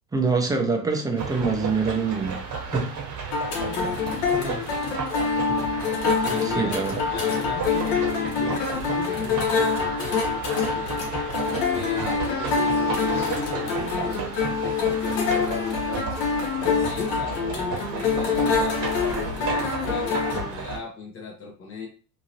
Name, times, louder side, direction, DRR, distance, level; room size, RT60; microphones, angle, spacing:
voice 1, 0.1-2.4 2.7-2.9 6.4-7.0, right 4 dB, 10° right, 3 dB, 0.7 m, -24 dB
sound 1, 1.2-20.8, right 5 dB, 40° right, 1.2 m, -33 dB
sound 2, 3.3-20.5, left 5 dB, 55° left, 1.2 m, -26 dB
voice 2, 4.0-4.7 5.3-5.6 6.2-6.8 7.1-11.1 11.7-14.3 14.6-16.2 16.6-21.9, left 4 dB, 25° left, 0 dB, 0.9 m, -37 dB
sound 3, 11.1-14.9, left 2 dB, 80° left, 1.4 m, -40 dB
2.9 x 2.7 x 2.8 m, 0.38 s
hypercardioid pair, 70°, 49 cm